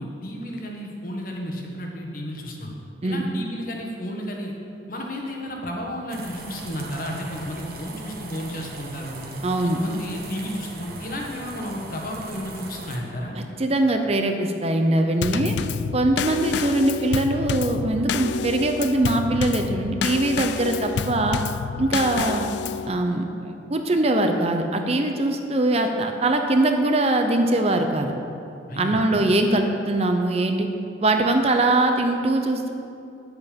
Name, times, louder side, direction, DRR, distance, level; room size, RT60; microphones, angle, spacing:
voice 1, 0.0-2.7 3.0-4.5 4.9-9.2 9.6-13.4 28.7-29.1, equal, 50° left, 0 dB, 1.4 m, -32 dB
sound 1, 6.1-13.0, right 2 dB, 55° right, 1.2 m, -39 dB
voice 2, 9.4-9.8 13.4-15.6 15.9-21.4 21.8-22.5 22.9-28.1 28.8-30.7 31.0-32.7, right 2 dB, 35° right, 5 dB, 0.6 m, -22 dB
Drum kit / Snare drum / Bass drum, 15.2-22.9, left 7 dB, 70° left, 0.3 m, -29 dB
9.4 x 8.1 x 5.2 m, 2.6 s
head